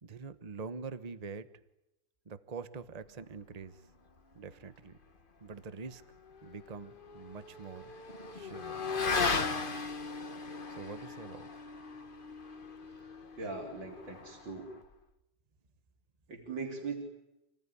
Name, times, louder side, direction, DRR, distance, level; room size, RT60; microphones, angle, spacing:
voice 1, 0.0-1.5 2.2-3.9 4.3-5.0 5.4-6.0 6.4-7.9 8.3-8.9 10.7-11.5, right 5 dB, 25° right, 11 dB, 0.8 m, -45 dB
Motorcycle / Accelerating revving vroom, 6.2-14.9, left 4 dB, 30° left, 1.2 m, -37 dB
voice 2, 12.8-14.7 16.3-17.0, right 4 dB, 60° right, -1 dB, 4.3 m, -41 dB
28.5 x 19.0 x 10.0 m, 0.95 s
omnidirectional pair, 2.4 m